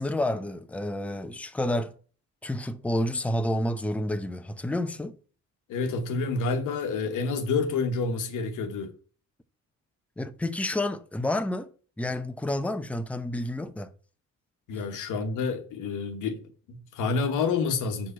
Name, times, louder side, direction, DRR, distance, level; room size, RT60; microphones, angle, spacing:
voice 1, 0.0-1.9 2.4-5.2 10.2-11.7 12.0-13.9, left 1 dB, 5° left, 0.7 m, -29 dB
voice 2, 5.7-8.9 14.7-16.4 16.7-18.1, left 4 dB, 85° left, 1.2 m, -28 dB
6.4 x 4.5 x 5.6 m
cardioid pair, 90°, 30 cm